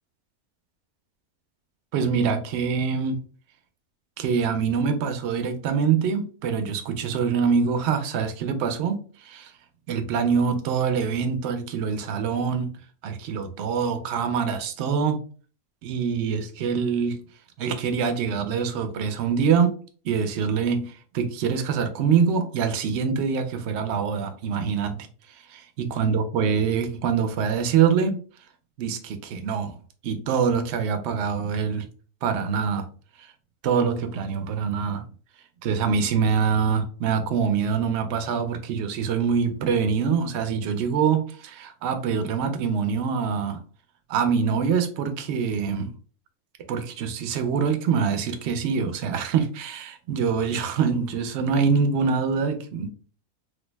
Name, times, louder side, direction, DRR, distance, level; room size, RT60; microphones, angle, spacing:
voice 1, 1.9-3.2 4.2-9.5 9.9-12.7 13.0-15.2 15.8-17.2 17.6-19.8 20.0-25.0 25.3-28.2 28.8-29.8 30.0-31.9 32.2-32.9 33.2-33.3 33.6-35.0 35.6-43.6 44.1-45.9 46.7-52.9, right 6 dB, 65° right, 0.7 m, -24 dB
3.3 x 2.1 x 3.1 m
omnidirectional pair, 1.4 m